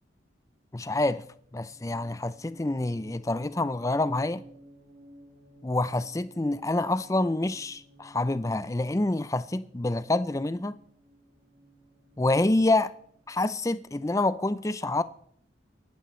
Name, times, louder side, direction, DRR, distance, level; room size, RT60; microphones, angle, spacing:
voice 1, 0.7-1.2 1.5-4.4 5.6-10.8 12.2-12.9 13.3-15.0, left 2 dB, 15° left, 0.4 m, -27 dB
sound 1, 1.6-13.6, right 1 dB, 65° right, 2.8 m, -55 dB
24.0 x 11.5 x 3.2 m
head